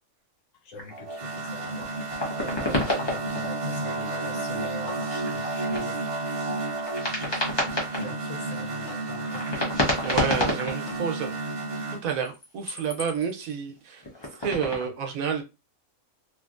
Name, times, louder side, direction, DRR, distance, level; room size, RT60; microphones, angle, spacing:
voice 1, 0.6-2.0 2.4-6.0 7.0-7.5 7.9-9.5, left 3 dB, 70° left, 1.0 m, -43 dB
sound 1, 0.8-0.9 1.3-3.5 4.1-4.2 5.2-5.8 6.6-8.2 9.0-11.0 12.1-13.5 14.0-14.9, left 1 dB, 25° left, 0.7 m, -30 dB
sound 2, 0.9-12.0, right 2 dB, 55° right, 0.3 m, -32 dB
voice 2, 10.0-11.4 12.0-14.0 14.4-15.4, right 7 dB, 80° right, 1.1 m, -29 dB
3.1 x 2.5 x 2.4 m
omnidirectional pair, 1.5 m